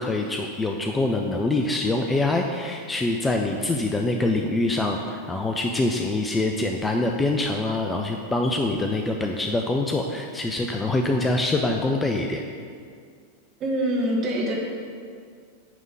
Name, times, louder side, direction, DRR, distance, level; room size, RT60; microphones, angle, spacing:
voice 1, 0.0-12.4, left 2 dB, 10° left, 2 dB, 0.5 m, -25 dB
voice 2, 13.6-14.5, right 1 dB, 30° right, -2 dB, 1.6 m, -24 dB
9.1 x 3.7 x 5.4 m, 2.1 s
figure-of-eight pair, 90°, 0 cm